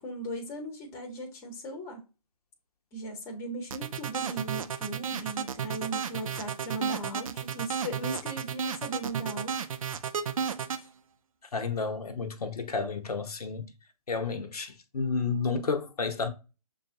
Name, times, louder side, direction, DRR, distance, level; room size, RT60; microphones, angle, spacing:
voice 1, 0.0-2.0 2.9-9.6 10.7-10.9, right 1 dB, 15° left, 0.8 m, -38 dB
sound 1, 3.7-10.8, right 7 dB, 60° right, 0.5 m, -32 dB
voice 2, 11.5-13.7 14.1-16.3, left 4 dB, 70° left, 0.7 m, -31 dB
6.6 x 2.4 x 2.7 m
figure-of-eight pair, 135°, 20 cm